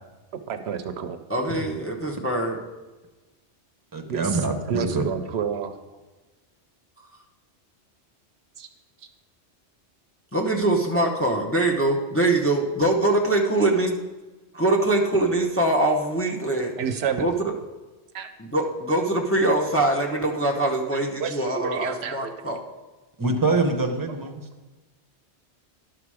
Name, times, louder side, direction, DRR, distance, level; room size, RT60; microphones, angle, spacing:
voice 1, 0.3-1.2 2.8-2.9 4.1-5.8 8.6-8.7 16.8-17.3 18.1-18.3 21.2-22.3, right 7 dB, 70° right, 9 dB, 0.8 m, -30 dB
voice 2, 1.3-2.6 10.3-14.0 14.5-16.7 17.2-17.5 18.4-22.6, right 2 dB, 15° left, 0 dB, 0.7 m, -23 dB
voice 3, 3.9-5.0 23.2-24.4, right 3 dB, 20° right, 4 dB, 0.9 m, -24 dB
11.0 x 5.9 x 4.8 m, 1.2 s
omnidirectional pair, 1.2 m